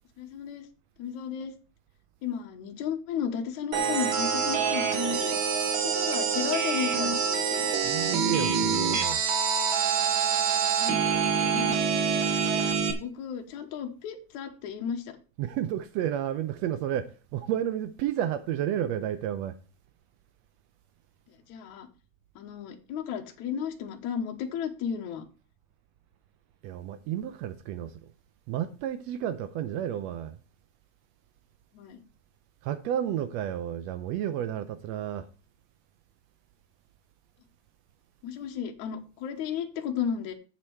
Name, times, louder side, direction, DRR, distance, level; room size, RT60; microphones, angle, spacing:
voice 1, 0.2-0.7 1.0-1.5 2.2-5.4 5.8-7.7 10.8-11.1 11.5-11.8 13.0-15.2 21.5-21.9 22.4-25.2 31.7-32.0 38.2-40.3, left 8 dB, 70° left, 2.4 m, -34 dB
sound 1, 3.7-12.9, right 6 dB, 60° right, 1.4 m, -26 dB
voice 2, 7.8-9.2 15.4-19.6 26.6-27.9 28.5-30.4 32.6-35.3, right 10 dB, 85° right, 1.5 m, -31 dB
7.7 x 7.6 x 4.6 m
omnidirectional pair, 3.6 m